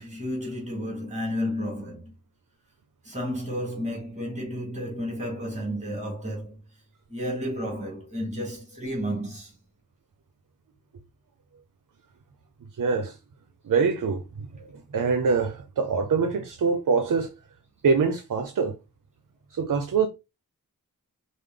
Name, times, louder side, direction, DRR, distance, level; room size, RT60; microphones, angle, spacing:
voice 1, 0.0-2.1 3.0-6.6 7.1-9.5, equal, 20° right, 2.1 m, -32 dB
voice 2, 12.8-13.2 13.6-17.3 17.8-18.8 19.5-20.1, right 5 dB, 70° right, 0.6 m, -24 dB
5.0 x 2.0 x 3.7 m
wide cardioid pair, 70°, 33 cm